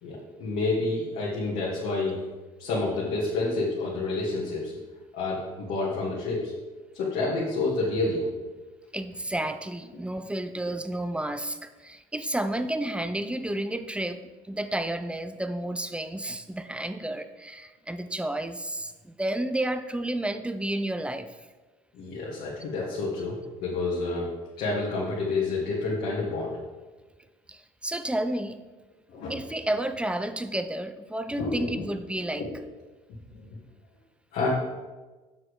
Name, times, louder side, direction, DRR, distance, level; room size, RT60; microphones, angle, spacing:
voice 1, 0.0-2.2 2.6-4.7 5.1-6.5 6.9-8.3 21.9-24.3 24.6-26.6 29.1-29.3 31.3-31.9 32.3-32.5 34.3-34.5, left 3 dB, 65° left, -6 dB, 2.1 m, -29 dB
voice 2, 8.9-21.4 27.5-28.6 29.3-32.4, right 1 dB, 5° right, 10 dB, 0.6 m, -31 dB
7.4 x 6.2 x 5.0 m, 1.2 s
hypercardioid pair, 70°, 17 cm